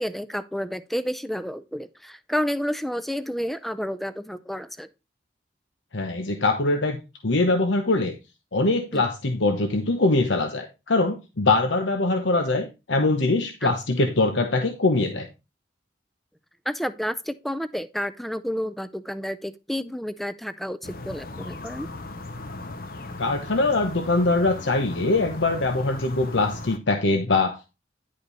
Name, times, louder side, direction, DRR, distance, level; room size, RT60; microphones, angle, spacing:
voice 1, 0.0-4.9 8.9-9.0 13.6-13.7 16.7-21.9, equal, ahead, 13 dB, 0.4 m, -30 dB
voice 2, 5.9-7.0 7.2-8.1 8.5-15.3 23.2-27.7, left 2 dB, 80° left, 5 dB, 1.0 m, -23 dB
sound 1, 20.8-26.8, left 2 dB, 50° left, 0.8 m, -37 dB
10.5 x 5.1 x 4.0 m, 0.27 s
head